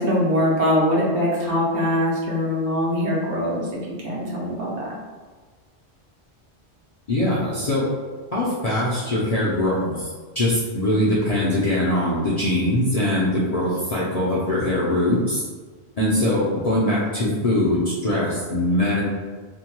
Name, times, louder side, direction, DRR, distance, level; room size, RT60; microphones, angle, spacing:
voice 1, 0.0-4.9 16.0-16.3, equal, 60° right, -5 dB, 0.9 m, -22 dB
voice 2, 7.1-7.9 8.3-10.1 10.4-15.4 16.0-19.0, left 1 dB, 50° left, -8 dB, 0.5 m, -22 dB
2.7 x 2.2 x 2.9 m, 1.4 s
omnidirectional pair, 1.1 m